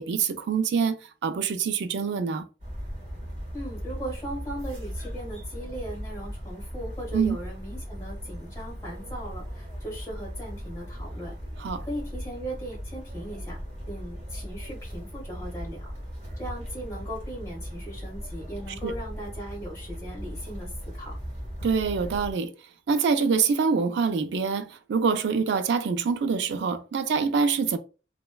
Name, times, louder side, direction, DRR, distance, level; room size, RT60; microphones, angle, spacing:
voice 1, 0.0-2.5 7.1-7.4 11.6-11.8 18.8-18.9 21.6-22.5 22.9-27.8, right 5 dB, 75° right, 0.3 m, -25 dB
sound 1, 2.6-22.3, equal, 40° right, 1.3 m, -38 dB
voice 2, 3.5-11.3 11.8-13.6 13.9-15.9 16.4-21.1, right 1 dB, 15° left, 1.1 m, -38 dB
3.0 x 2.1 x 2.2 m
head